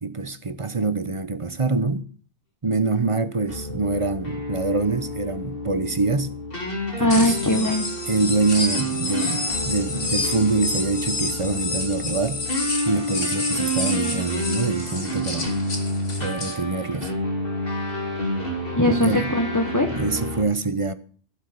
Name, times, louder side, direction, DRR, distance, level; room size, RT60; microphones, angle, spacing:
voice 1, 0.0-2.1 2.6-6.3 7.0-7.4 8.1-12.4 12.9-15.5 16.2-17.1 19.0-19.3 19.9-20.9, right 3 dB, 30° right, 0.9 m, -25 dB
sound 1, 3.5-20.4, equal, 50° left, 3.6 m, -30 dB
voice 2, 7.0-7.9 18.8-19.9, left 1 dB, 15° left, 1.4 m, -20 dB
sound 2, 7.1-16.5, left 3 dB, 90° left, 2.7 m, -29 dB
16.0 x 7.4 x 6.7 m
omnidirectional pair, 1.2 m